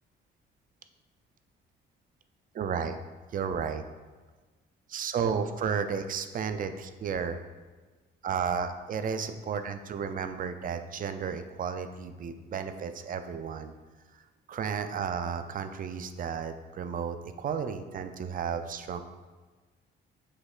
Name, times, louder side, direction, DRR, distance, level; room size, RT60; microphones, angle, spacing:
voice 1, 2.5-3.0 3.3-3.8 4.9-7.4 8.2-13.7 14.1-14.2 14.5-19.0, right 6 dB, 45° right, 9 dB, 0.4 m, -33 dB
6.5 x 3.0 x 2.4 m, 1.3 s
cardioid pair, 90°, 20 cm